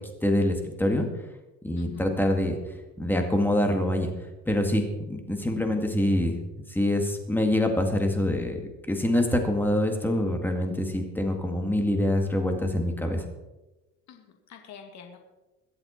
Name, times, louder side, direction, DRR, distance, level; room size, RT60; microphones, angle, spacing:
voice 1, 0.2-1.1 1.6-2.6 3.0-4.1 4.5-6.4 6.7-8.6 8.9-13.2, left 1 dB, 5° left, 4 dB, 2.0 m, -25 dB
voice 2, 1.8-2.1 14.1-15.2, left 6 dB, 50° left, 3 dB, 2.2 m, -47 dB
22.5 x 7.8 x 4.4 m, 1.1 s
cardioid pair, 130°, 35 cm